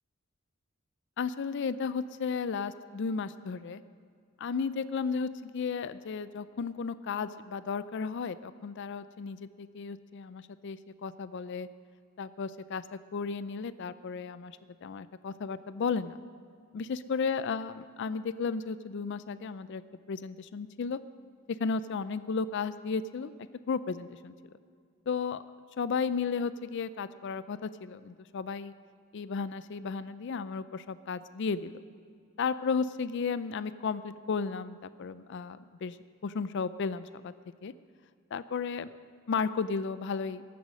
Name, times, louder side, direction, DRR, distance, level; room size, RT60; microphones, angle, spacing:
voice 1, 1.2-3.8 4.4-11.7 12.2-16.2 16.7-19.8 20.1-21.0 21.5-23.3 23.7-24.3 25.1-25.4 25.8-28.7 29.1-31.8 32.4-36.0 36.2-37.3 37.6-37.7 38.3-38.9 39.3-40.4, left 5 dB, 60° left, 15 dB, 0.4 m, -34 dB
14.5 x 11.5 x 6.2 m, 2.2 s
head